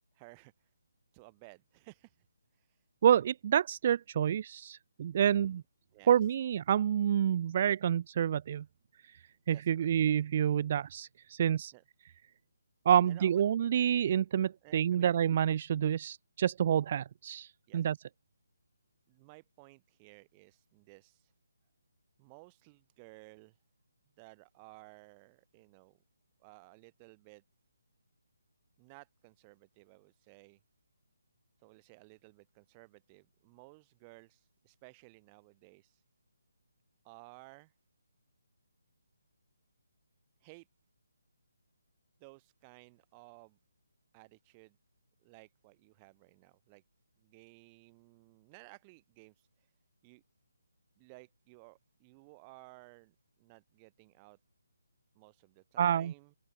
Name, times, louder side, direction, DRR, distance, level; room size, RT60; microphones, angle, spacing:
voice 1, 0.1-0.7 1.1-2.3 2.5-2.8 5.2-5.5 5.9-6.3 9.5-9.9 11.7-12.2 13.0-13.4 14.6-15.2 17.7-17.8 19.1-21.3 22.2-23.6 24.2-26.0 26.4-27.4 28.8-30.6 31.6-36.0 37.0-37.7 40.4-40.7 42.2-43.6 44.1-44.8 45.2-46.8 47.2-49.7 50.0-50.2 51.0-54.4 55.1-56.3, right 28 dB, 20° right, 1.8 m, -57 dB
voice 2, 3.0-5.6 6.1-8.6 9.0-11.7 12.9-18.0 55.8-56.1, right 9 dB, 40° right, 0.4 m, -28 dB
open air
figure-of-eight pair, 155°, 0 cm